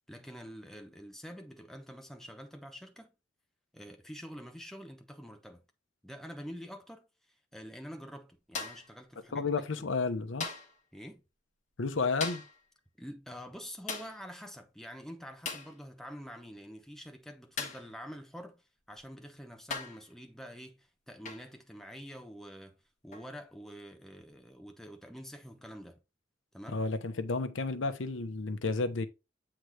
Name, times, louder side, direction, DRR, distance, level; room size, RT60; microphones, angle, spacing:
voice 1, 0.1-3.1 3.7-5.6 6.0-9.5 9.8-9.9 10.9-11.2 13.0-22.8 23.0-26.0 26.5-26.8, equal, ahead, 0.8 m, -47 dB
sound 1, 8.5-8.9 10.4-10.8 12.2-12.6 13.9-14.2 15.4-15.8 17.6-17.9 19.0-19.1 19.7-20.1 21.2-21.5 23.1-23.3, left 4 dB, 40° left, 1.2 m, -39 dB
voice 2, 9.3-10.5 11.8-12.4 26.7-29.1, left 3 dB, 90° left, 0.8 m, -32 dB
7.8 x 3.8 x 3.3 m
head